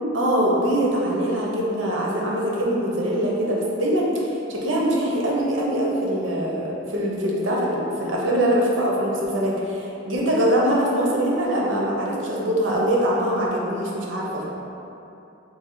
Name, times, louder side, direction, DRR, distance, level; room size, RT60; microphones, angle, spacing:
voice 1, 0.1-14.4, right 1 dB, 70° right, -3 dB, 0.7 m, -23 dB
3.2 x 3.0 x 3.8 m, 2.8 s
head